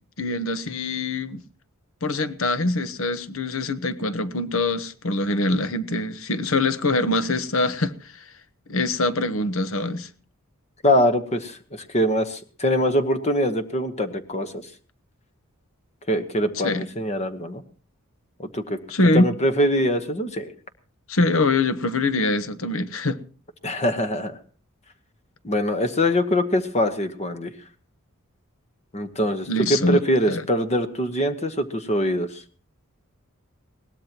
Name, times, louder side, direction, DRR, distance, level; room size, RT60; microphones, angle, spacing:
voice 1, 0.2-1.4 2.0-8.2 8.7-10.1 16.6-16.9 18.9-19.3 21.1-23.2 29.5-30.0 30.3-30.4, left 2 dB, 70° left, 1.1 m, -23 dB
voice 2, 10.8-14.7 16.1-17.6 18.4-18.8 19.1-20.5 23.6-24.4 25.4-27.5 28.9-32.4, equal, 30° left, 1.1 m, -23 dB
21.0 x 18.5 x 3.0 m
head